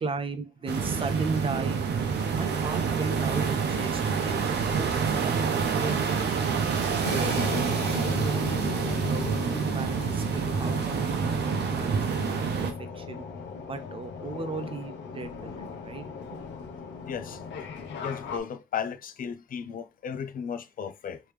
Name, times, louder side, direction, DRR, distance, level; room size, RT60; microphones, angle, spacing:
voice 1, 0.0-4.9 5.2-7.3 7.9-8.7 9.1-12.7 12.9-13.2 13.7-16.0 16.3-16.4, right 4 dB, 30° right, 0.4 m, -36 dB
sound 1, 0.7-12.7, right 6 dB, 65° right, 0.7 m, -27 dB
sound 2, 7.0-18.4, left 5 dB, 85° left, 0.8 m, -37 dB
voice 2, 17.1-17.4 18.0-21.2, left 7 dB, 50° left, 0.4 m, -35 dB
3.2 x 3.0 x 3.3 m
wide cardioid pair, 175°, 18 cm